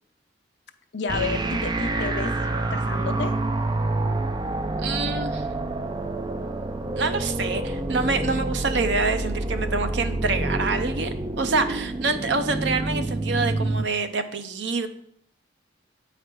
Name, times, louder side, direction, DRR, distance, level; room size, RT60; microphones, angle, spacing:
voice 1, 0.9-2.3 2.7-3.3, left 4 dB, 65° left, 7 dB, 0.6 m, -30 dB
sound 1, 1.1-13.9, right 2 dB, 20° right, 0.4 m, -27 dB
voice 2, 4.8-5.5 7.0-14.9, right 3 dB, 65° right, 9 dB, 0.6 m, -26 dB
7.7 x 4.9 x 4.5 m, 0.68 s
head